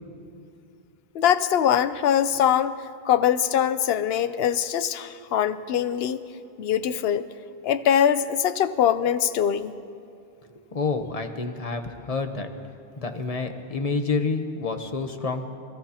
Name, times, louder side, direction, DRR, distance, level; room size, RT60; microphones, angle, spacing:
voice 1, 1.1-2.7 3.1-6.2 6.6-7.3 7.6-9.8, left 9 dB, 75° left, 13 dB, 0.8 m, -22 dB
voice 2, 10.7-12.5 13.0-15.4, left 4 dB, 40° left, 6 dB, 0.9 m, -28 dB
25.5 x 15.5 x 2.9 m, 2.5 s
omnidirectional pair, 1.1 m